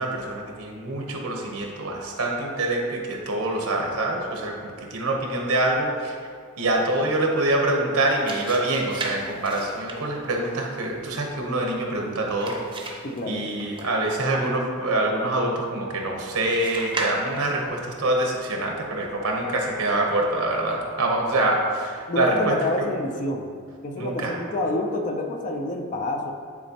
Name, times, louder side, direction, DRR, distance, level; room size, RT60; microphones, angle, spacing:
voice 1, 0.0-4.5 4.9-6.1 6.6-12.5 12.9-13.0 13.3-22.9 24.0-24.3, right 2 dB, 75° right, 1 dB, 0.9 m, -25 dB
sound 1, 7.9-14.3 16.5-17.7, right 2 dB, 20° right, 0.7 m, -37 dB
voice 2, 13.0-13.4 22.1-23.5 23.8-26.3, left 1 dB, 35° left, 3 dB, 0.5 m, -28 dB
9.5 x 4.2 x 2.9 m, 2.1 s
head